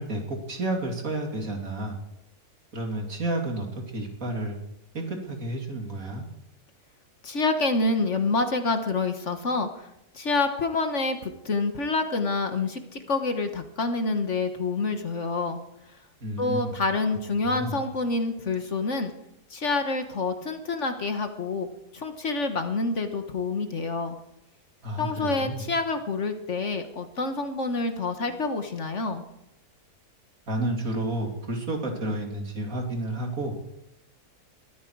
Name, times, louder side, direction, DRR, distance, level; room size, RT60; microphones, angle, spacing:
voice 1, 0.0-2.0 2.7-4.6 4.9-6.3 16.2-16.8 17.4-17.7 24.8-25.6 30.5-33.5, right 1 dB, 60° right, 2 dB, 3.2 m, -31 dB
voice 2, 7.2-9.9 10.1-15.6 16.4-19.1 19.5-21.7 21.9-24.2 25.0-29.2, left 3 dB, 50° left, 7 dB, 1.6 m, -27 dB
22.5 x 13.5 x 4.7 m, 0.85 s
omnidirectional pair, 1.7 m